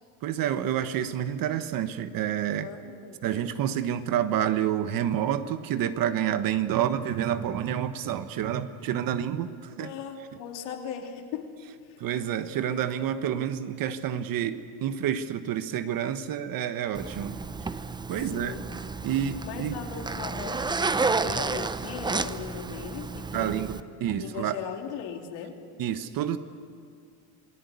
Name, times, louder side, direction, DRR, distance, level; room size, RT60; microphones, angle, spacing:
voice 1, 0.2-2.7 3.2-9.9 12.0-17.4 18.1-18.5 19.0-19.8 23.3-24.6 25.8-26.4, right 10 dB, 50° right, 10 dB, 1.4 m, -28 dB
voice 2, 2.6-3.2 9.8-12.0 18.2-18.7 19.4-23.7 24.2-25.6, left 8 dB, 70° left, 3 dB, 3.2 m, -38 dB
Zipper (clothing), 16.9-23.8, right 4 dB, 10° right, 0.6 m, -31 dB
27.5 x 18.0 x 8.4 m, 2.2 s
supercardioid pair, 115°, 44 cm